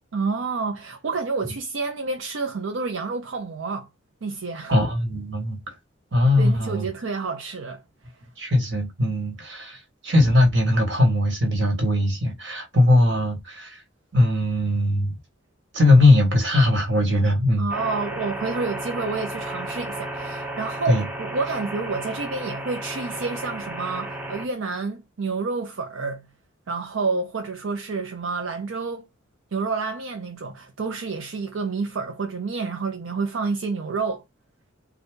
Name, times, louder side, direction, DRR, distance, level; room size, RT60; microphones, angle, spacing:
voice 1, 0.1-3.9 4.2-4.7 6.4-7.8 17.6-26.3 26.7-29.1 29.5-34.2, right 4 dB, 80° right, 0.6 m, -29 dB
voice 2, 4.7-5.6 6.1-6.9 8.4-9.8 10.0-13.7 14.1-15.1 15.7-17.7 20.9-21.0, left 1 dB, 60° right, 1.6 m, -20 dB
sound 1, 17.7-24.5, right 1 dB, 5° right, 0.6 m, -33 dB
3.9 x 2.3 x 3.6 m
head